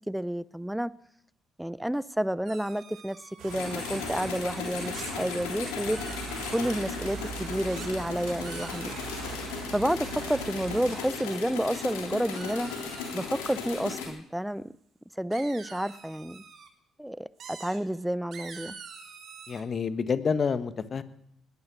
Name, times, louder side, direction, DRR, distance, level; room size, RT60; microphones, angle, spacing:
voice 1, 0.1-0.9 1.6-3.2 3.4-6.0 6.5-8.9 9.7-12.7 13.1-14.6 15.2-16.4 17.0-18.8, equal, 5° right, 19 dB, 0.6 m, -30 dB
sound 1, 2.5-4.1 4.9-5.1 5.7-6.7 7.7-7.9 8.3-9.4 11.7-11.9 12.2-13.6 15.3-16.7 17.4-17.8 18.3-19.6, right 6 dB, 60° right, 3.1 m, -46 dB
sound 2, 3.4-11.0, right 5 dB, 75° right, 5.0 m, -41 dB
sound 3, 3.5-14.1, left 5 dB, 80° left, 3.3 m, -37 dB
voice 2, 19.5-21.0, left 5 dB, 45° left, 13 dB, 1.3 m, -28 dB
20.0 x 11.5 x 6.1 m, 0.76 s
hypercardioid pair, 50°, 0 cm